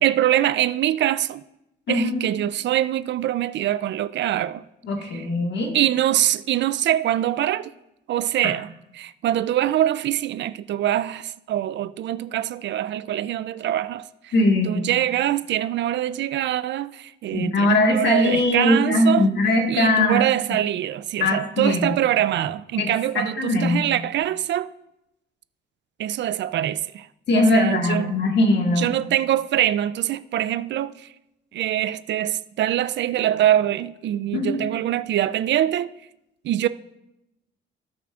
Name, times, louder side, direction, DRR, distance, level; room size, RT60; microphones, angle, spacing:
voice 1, 0.0-1.4 1.9-4.6 5.1-5.3 5.7-7.7 8.1-8.7 8.9-14.3 14.6-19.3 19.7-24.7 26.0-27.1 27.4-28.1 28.8-31.1 31.5-35.9 36.4-36.7, right 12 dB, 65° right, 0.4 m, -24 dB
voice 2, 1.9-2.3 4.8-5.7 8.4-8.5 14.3-14.9 17.3-20.2 21.2-22.0 22.8-23.8 27.3-29.0 34.3-34.7, left 2 dB, 60° left, 1.7 m, -21 dB
17.0 x 5.9 x 2.4 m
cardioid pair, 90°, 20 cm